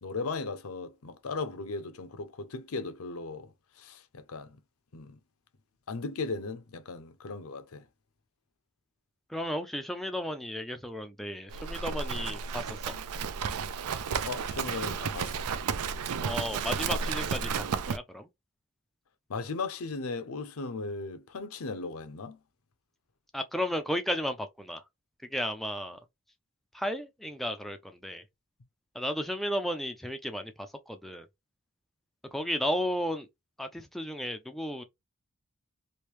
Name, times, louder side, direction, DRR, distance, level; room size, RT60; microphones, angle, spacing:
voice 1, 0.0-4.6 4.9-5.2 5.9-7.9 14.2-15.5 19.3-22.4, left 3 dB, 75° left, 0.6 m, -37 dB
voice 2, 9.3-12.8 16.2-18.3 23.3-24.8 25.3-26.0 26.7-28.2 28.9-31.3 32.3-33.3 33.6-34.8, equal, ahead, 0.3 m, -34 dB
Livestock farm animals working animals, 11.5-18.0, right 6 dB, 85° right, 0.4 m, -32 dB
3.1 x 2.6 x 3.1 m
head